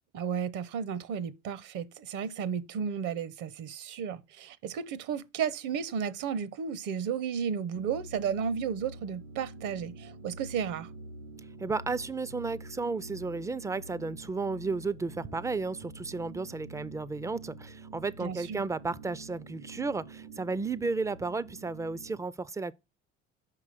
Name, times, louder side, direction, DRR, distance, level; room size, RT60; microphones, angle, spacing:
voice 1, 0.1-10.9 18.2-18.6, right 7 dB, 60° right, 0.8 m, -33 dB
sound 1, 7.7-22.2, right 3 dB, 85° right, 1.9 m, -47 dB
voice 2, 11.6-22.7, right 4 dB, 10° right, 0.3 m, -33 dB
5.9 x 5.0 x 5.7 m
hypercardioid pair, 65°, 35 cm